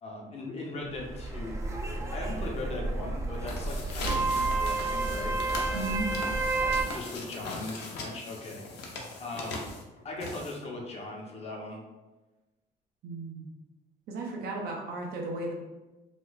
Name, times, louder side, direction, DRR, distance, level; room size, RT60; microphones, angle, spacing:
voice 1, 0.0-1.6 2.1-5.4 6.6-8.6 9.2-9.6 10.0-11.8, left 2 dB, 40° left, -2 dB, 0.8 m, -39 dB
sound 1, 0.8-6.8, right 3 dB, 15° right, 0.5 m, -30 dB
sound 2, 3.3-10.8, left 3 dB, 85° left, 0.7 m, -40 dB
voice 2, 5.7-6.1 13.0-13.4 14.1-15.5, right 2 dB, 65° right, 0 dB, 0.8 m, -34 dB
3.0 x 2.1 x 3.9 m, 1.1 s
cardioid pair, 110°, 17 cm